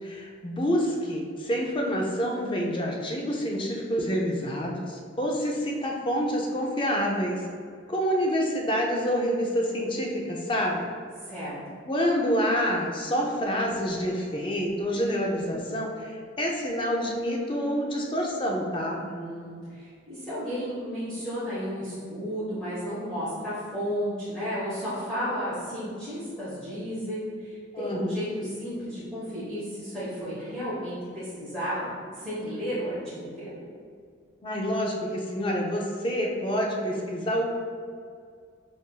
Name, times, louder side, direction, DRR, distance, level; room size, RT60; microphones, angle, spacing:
voice 1, 0.0-7.4 7.9-10.9 11.9-19.0 27.7-28.2 34.4-37.5, equal, 25° left, 0 dB, 0.4 m, -27 dB
voice 2, 11.2-11.6 19.0-31.9 32.1-33.6, equal, 5° left, -13 dB, 0.8 m, -33 dB
5.5 x 2.5 x 2.2 m, 2.2 s
head